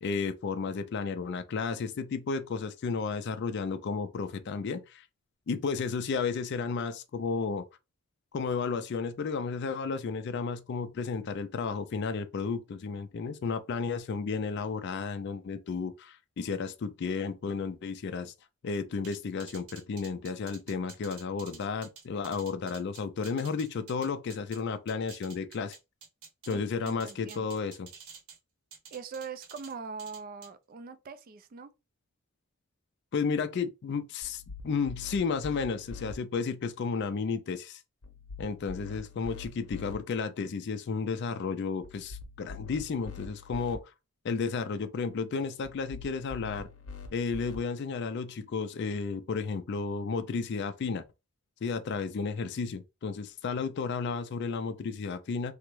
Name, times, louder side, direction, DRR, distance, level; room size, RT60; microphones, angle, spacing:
voice 1, 0.0-5.1 5.5-7.7 8.3-18.3 18.6-25.8 26.5-27.9 33.1-37.8 38.4-43.8 44.2-46.7 47.1-51.0 51.6-55.5, left 5 dB, 50° left, 0.3 m, -33 dB
sound 1, 19.0-24.6 24.9-26.6 26.9-28.4 28.7-29.7 30.0-30.5, right 6 dB, 70° right, 0.8 m, -50 dB
voice 2, 26.5-27.5 28.9-31.7, right 5 dB, 40° right, 0.3 m, -42 dB
sound 2, 34.2-36.1 38.0-40.0 41.8-43.8 45.6-47.6, left 4 dB, 75° left, 0.7 m, -44 dB
3.4 x 2.0 x 3.1 m
head